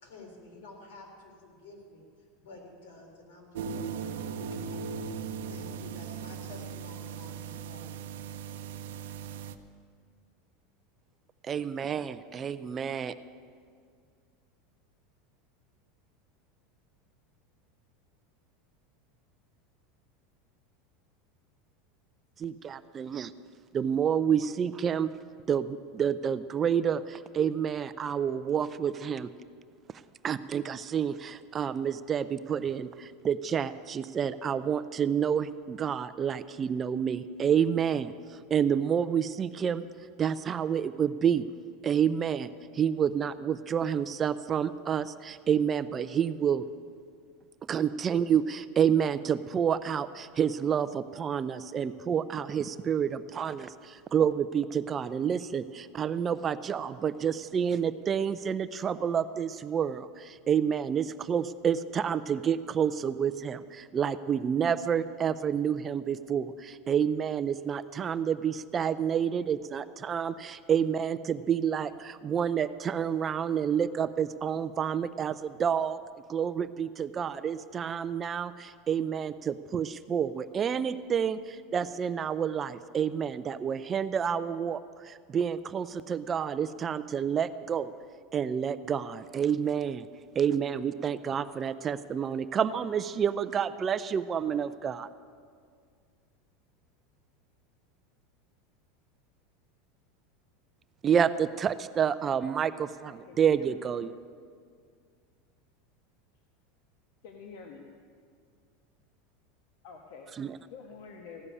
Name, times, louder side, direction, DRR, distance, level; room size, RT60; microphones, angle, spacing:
voice 1, 0.0-2.0 2.4-8.1, left 2 dB, 85° left, 1 dB, 3.6 m, -51 dB
sound 1, 3.5-9.6, right 6 dB, 85° right, 0.7 m, -38 dB
voice 2, 11.4-13.1 22.4-23.3 23.7-25.1 25.5-29.3 30.2-39.9 40.2-41.4 41.8-46.7 47.7-76.0 76.3-87.9 88.3-90.1 90.3-95.1 101.0-104.1 110.4-110.6, right 8 dB, 25° right, 13 dB, 0.4 m, -29 dB
voice 3, 103.0-103.8 107.2-107.9 109.8-110.3 110.7-111.5, left 5 dB, 65° left, 2 dB, 1.2 m, -47 dB
15.5 x 6.8 x 9.8 m, 2.1 s
supercardioid pair, 135°, 0 cm